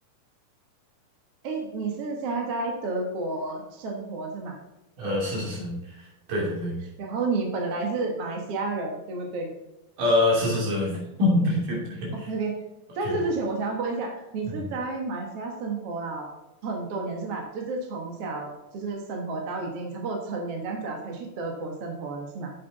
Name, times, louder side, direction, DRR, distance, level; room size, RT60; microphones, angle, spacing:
voice 1, 1.4-4.6 7.0-9.5 12.1-12.6 13.0-16.3 16.6-22.5, right 3 dB, 55° right, 1 dB, 1.9 m, -31 dB
voice 2, 5.0-6.8 10.0-12.3 13.0-13.2 14.4-14.7, left 2 dB, 70° right, -3 dB, 4.4 m, -25 dB
8.5 x 7.5 x 4.1 m, 0.98 s
omnidirectional pair, 3.9 m